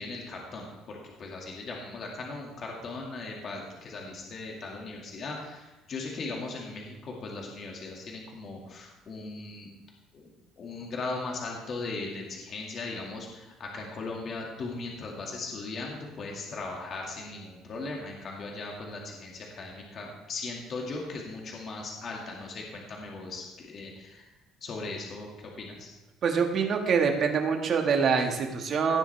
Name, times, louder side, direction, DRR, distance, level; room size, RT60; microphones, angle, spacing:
voice 1, 0.0-9.7 10.1-10.3 10.6-24.2 24.6-25.3 25.6-25.9, left 3 dB, 45° left, -1 dB, 2.1 m, -38 dB
voice 2, 26.2-29.0, right 6 dB, 45° right, 3 dB, 1.7 m, -25 dB
17.0 x 7.3 x 3.4 m, 1.1 s
cardioid pair, 120°, 0 cm